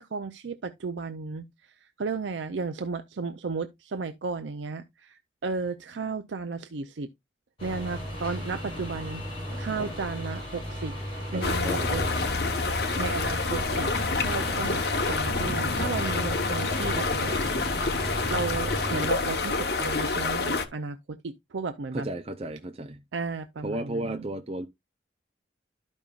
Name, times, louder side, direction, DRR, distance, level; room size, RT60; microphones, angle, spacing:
voice 1, 0.0-7.1 7.6-9.2 9.6-12.0 13.0-13.9 14.2-17.4 18.3-22.1 23.1-24.2, right 4 dB, 90° right, 0.5 m, -34 dB
sound 1, 7.6-19.0, equal, 30° left, 6.0 m, -35 dB
voice 2, 11.3-11.9 21.9-23.0 23.6-24.7, right 1 dB, 35° right, 0.5 m, -33 dB
sound 2, 11.4-20.7, left 3 dB, 60° left, 1.0 m, -28 dB
12.5 x 5.3 x 2.4 m
head